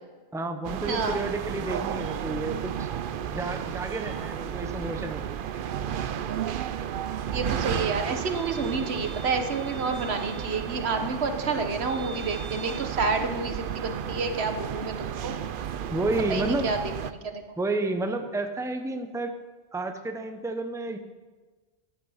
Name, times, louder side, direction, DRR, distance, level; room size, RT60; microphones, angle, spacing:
voice 1, 0.3-2.9 3.3-5.2 15.9-16.7 17.6-19.3 19.7-21.0, right 2 dB, 5° right, 6 dB, 0.8 m, -30 dB
sound 1, 0.6-17.1, right 9 dB, 60° right, 0.7 m, -33 dB
voice 2, 0.9-1.2 7.3-15.3 16.3-16.8 17.1-17.4, right 4 dB, 80° right, 7 dB, 1.4 m, -29 dB
14.5 x 10.0 x 5.7 m, 1.3 s
omnidirectional pair, 1.1 m